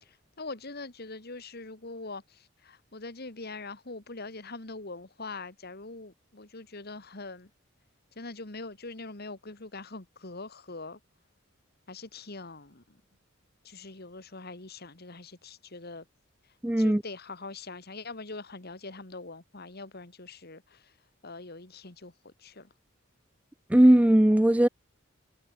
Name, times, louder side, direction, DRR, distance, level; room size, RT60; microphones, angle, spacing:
voice 1, 0.0-7.5 8.2-11.0 11.9-13.0 13.6-16.0 16.8-20.9 21.2-22.7, left 3 dB, 50° left, 2.1 m, -43 dB
voice 2, 16.6-17.0 23.7-24.7, right 1 dB, 5° right, 0.4 m, -19 dB
head